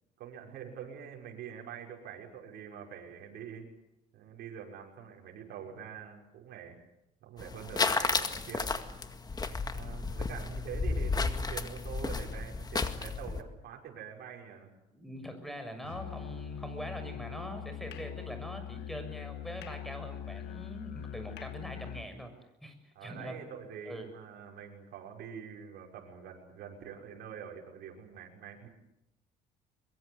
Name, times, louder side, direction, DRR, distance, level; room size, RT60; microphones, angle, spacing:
voice 1, 0.2-3.7 4.1-6.8 7.2-8.8 9.7-14.7 22.9-28.7, right 8 dB, 70° right, 0 dB, 6.1 m, -45 dB
sound 1, 7.4-13.4, left 4 dB, 25° left, 2.0 m, -33 dB
voice 2, 14.9-22.3 22.6-23.4 23.8-24.1, equal, ahead, 7 dB, 6.6 m, -43 dB
Musical instrument, 15.8-22.1, left 11 dB, 80° left, 1.6 m, -42 dB
23.0 x 23.0 x 8.2 m, 0.88 s
cardioid pair, 110°, 17 cm